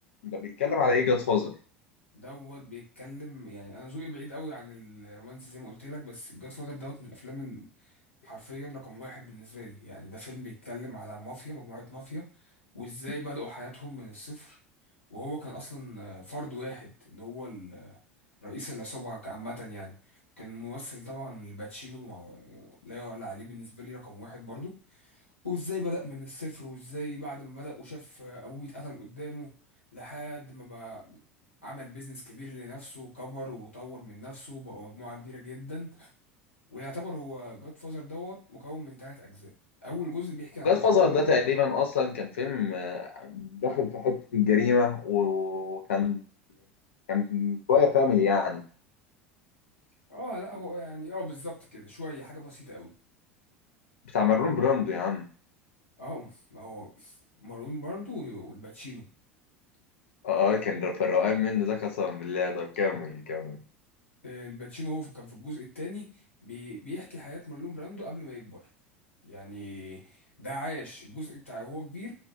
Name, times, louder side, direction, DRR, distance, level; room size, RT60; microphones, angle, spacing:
voice 1, 0.2-1.5 40.6-46.2 47.1-48.6 54.1-55.3 60.2-63.6, left 6 dB, 70° left, 2 dB, 0.5 m, -26 dB
voice 2, 2.1-7.9 8.2-14.6 15.1-18.0 18.4-29.5 29.9-31.2 31.6-36.1 36.7-39.5 39.8-41.3 50.1-52.9 56.0-59.1 64.2-66.1 66.4-68.6 69.2-72.2, left 1 dB, 90° left, -4 dB, 1.0 m, -40 dB
2.4 x 2.1 x 2.4 m, 0.40 s
figure-of-eight pair, 75°, 7 cm